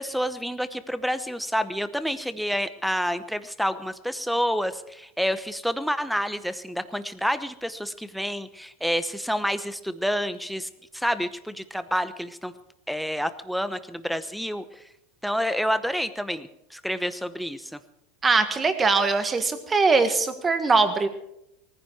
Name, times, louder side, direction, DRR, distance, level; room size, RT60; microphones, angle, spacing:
voice 1, 0.0-12.5 12.9-14.8 15.2-17.8, equal, ahead, 13 dB, 0.8 m, -28 dB
voice 2, 18.2-21.1, right 4 dB, 15° right, 9 dB, 1.6 m, -21 dB
18.5 x 15.0 x 4.7 m, 0.81 s
supercardioid pair, 140°, 0 cm